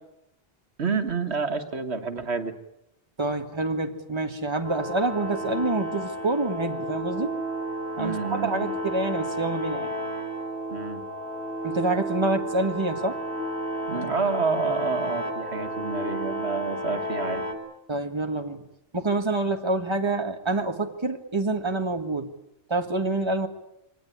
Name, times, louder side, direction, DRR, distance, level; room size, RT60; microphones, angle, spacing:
voice 1, 0.8-2.5 8.0-8.8 10.7-11.0 13.9-17.4, right 5 dB, 85° right, 7 dB, 1.8 m, -28 dB
voice 2, 3.2-7.4 8.0-9.9 11.6-13.2 17.9-18.6 18.9-22.3 22.7-23.5, right 2 dB, 25° right, 6 dB, 1.7 m, -27 dB
sound 1, 4.6-17.5, equal, 85° left, 3.6 m, -32 dB
24.0 x 18.5 x 9.9 m, 0.86 s
omnidirectional pair, 1.1 m